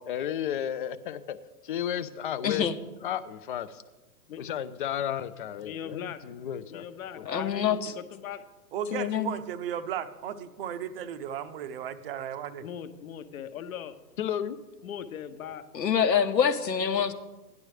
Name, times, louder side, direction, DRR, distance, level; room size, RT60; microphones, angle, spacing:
voice 1, 0.0-1.4 1.6-2.7 3.0-3.8 4.4-6.9 7.2-7.3 14.2-14.6, left 10 dB, 35° left, 13 dB, 0.5 m, -33 dB
voice 2, 2.4-2.8 7.3-7.9 8.9-9.3 15.7-17.1, left 7 dB, 85° left, 8 dB, 1.2 m, -26 dB
voice 3, 5.6-6.2 6.7-8.4 12.6-13.9 14.8-15.6 16.8-17.0, left 9 dB, 55° left, 9 dB, 1.1 m, -40 dB
voice 4, 8.7-12.6, right 9 dB, 35° right, 12 dB, 0.7 m, -35 dB
17.0 x 10.5 x 3.3 m, 1.1 s
hypercardioid pair, 135°, 49 cm